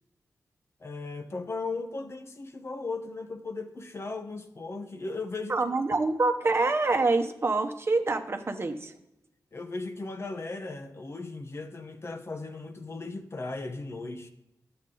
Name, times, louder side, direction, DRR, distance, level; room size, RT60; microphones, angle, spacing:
voice 1, 0.8-6.0 9.5-14.3, left 3 dB, 45° left, 7 dB, 1.0 m, -37 dB
voice 2, 5.5-8.9, right 3 dB, 40° right, 6 dB, 1.0 m, -26 dB
11.5 x 7.9 x 3.9 m, 0.86 s
cardioid pair, 70°, 6 cm